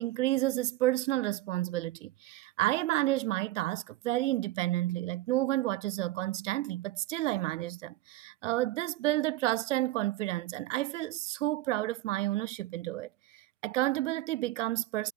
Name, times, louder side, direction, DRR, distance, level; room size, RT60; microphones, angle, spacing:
voice 1, 0.0-15.1, right 16 dB, 50° right, 2.3 m, -31 dB
hypercardioid pair, 135°, 46 cm